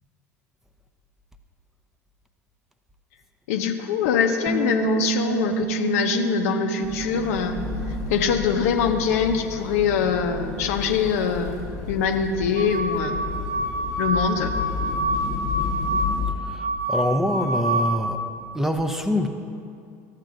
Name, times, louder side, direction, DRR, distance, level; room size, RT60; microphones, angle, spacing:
voice 1, 3.5-7.6 7.9-13.2 14.0-14.6, left 7 dB, 70° left, 6 dB, 0.6 m, -23 dB
sound 1, 4.5-10.7, right 10 dB, 25° right, 1.0 m, -31 dB
sound 2, 6.8-16.3, left 5 dB, 50° left, 1.0 m, -32 dB
sound 3, 12.6-18.0, right 1 dB, 70° right, 0.9 m, -27 dB
voice 2, 16.4-18.2 18.5-19.3, left 1 dB, 5° right, 6 dB, 0.6 m, -25 dB
13.0 x 7.4 x 2.5 m, 2.4 s
hypercardioid pair, 75°, 9 cm